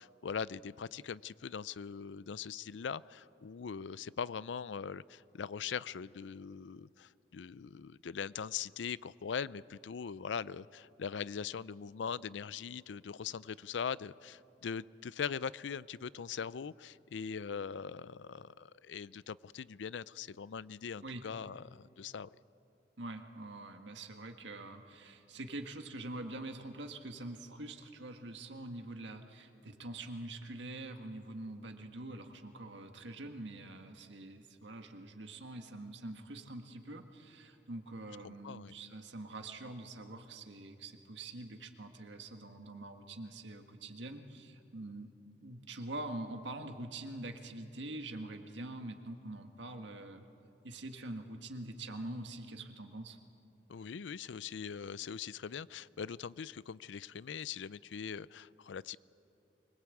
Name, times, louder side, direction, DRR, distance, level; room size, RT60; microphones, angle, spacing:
voice 1, 0.0-22.3 38.2-38.7 53.7-59.0, left 6 dB, 85° left, 19 dB, 0.5 m, -41 dB
voice 2, 23.0-45.1 45.4-50.2 50.6-53.2, right 2 dB, 90° right, 6 dB, 1.7 m, -45 dB
24.0 x 21.5 x 8.4 m, 2.7 s
head